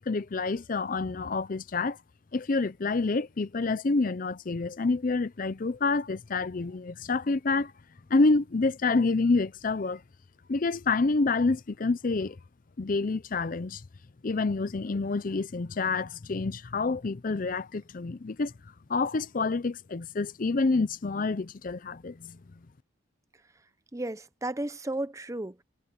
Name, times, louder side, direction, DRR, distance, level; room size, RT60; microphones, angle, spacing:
voice 1, 0.0-2.0 2.3-7.7 8.1-10.0 10.5-12.4 12.8-13.8 14.2-18.5 18.9-22.4, left 3 dB, 40° left, 0.5 m, -28 dB
voice 2, 23.9-25.6, right 1 dB, 15° right, 0.6 m, -34 dB
head